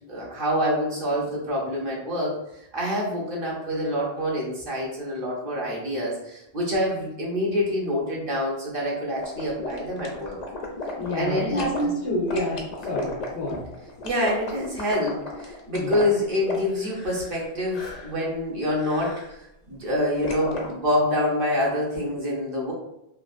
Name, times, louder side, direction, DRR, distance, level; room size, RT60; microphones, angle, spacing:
voice 1, 0.1-10.4 11.1-11.9 14.0-22.7, left 1 dB, 55° right, -4 dB, 1.0 m, -26 dB
sound 1, 9.2-11.8 12.3-17.5 17.7-18.2 18.7-19.3 20.2-20.7, left 2 dB, 50° left, 0.6 m, -35 dB
voice 2, 10.9-13.6 15.7-16.0, left 1 dB, 90° left, -5 dB, 1.1 m, -28 dB
3.3 x 2.5 x 2.5 m, 0.83 s
omnidirectional pair, 1.1 m